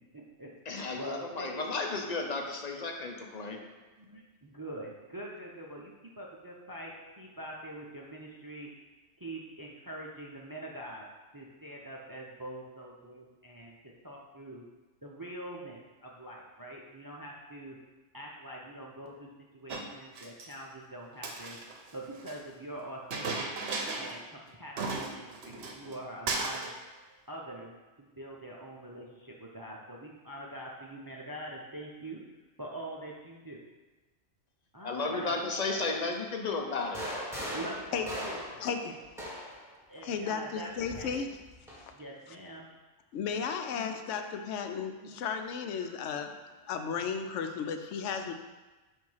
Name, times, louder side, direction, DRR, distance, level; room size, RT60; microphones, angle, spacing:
voice 1, 0.1-1.6 3.3-8.7 9.2-11.1 11.3-13.8 14.0-14.6 15.0-17.8 18.1-21.6 21.9-23.5 24.0-26.7 27.3-27.7 28.0-32.2 32.6-33.6 34.7-35.5 36.2-38.5 38.8-39.0 39.9-41.2 41.6-42.7 43.7-45.4 45.8-46.8 47.2-48.3, right 1 dB, 25° right, -2 dB, 0.5 m, -45 dB
voice 2, 0.7-3.6 34.8-37.0, left 3 dB, 40° left, 2 dB, 0.7 m, -33 dB
Chink clink, 19.7-20.5 21.1-22.4 23.1-24.2 24.5-24.6 24.8-26.0 26.3-26.8, right 3 dB, 65° right, 0.9 m, -36 dB
sound 1, 36.8-39.7 40.8-41.9, equal, ahead, 1.3 m, -39 dB
voice 3, 37.9-38.9 40.0-41.3 43.1-46.3 46.7-48.3, left 6 dB, 85° left, 6 dB, 0.9 m, -34 dB
7.6 x 2.7 x 5.5 m, 1.2 s
omnidirectional pair, 1.2 m